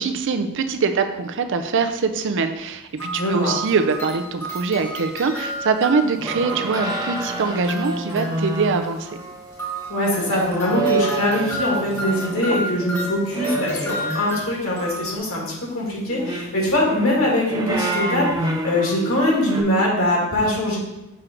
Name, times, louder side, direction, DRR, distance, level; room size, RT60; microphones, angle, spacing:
voice 1, 0.0-9.1, right 4 dB, 55° right, 8 dB, 0.5 m, -23 dB
sound 1, 3.0-8.6 9.5-15.2, right 1 dB, 10° left, 1.2 m, -32 dB
voice 2, 3.2-3.5 9.9-20.8, left 1 dB, 65° left, -3 dB, 2.1 m, -22 dB
sound 2, 6.2-12.7 13.3-14.5 16.0-19.6, right 2 dB, 15° right, 0.6 m, -28 dB
6.2 x 3.8 x 4.4 m, 0.96 s
head